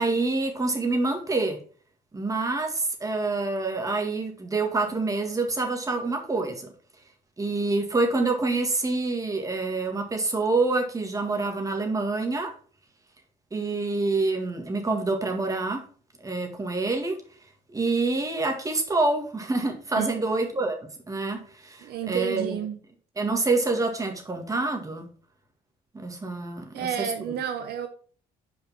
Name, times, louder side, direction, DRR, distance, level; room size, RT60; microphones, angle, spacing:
voice 1, 0.0-1.6 2.1-6.7 7.4-12.5 13.5-15.8 16.2-17.2 17.7-20.8 21.1-22.6 23.2-25.0 25.9-27.3, right 3 dB, 20° right, 1.9 m, -27 dB
voice 2, 21.8-22.8 26.7-27.9, right 8 dB, 70° right, 0.8 m, -30 dB
5.3 x 5.1 x 5.9 m
cardioid pair, 110°, 17 cm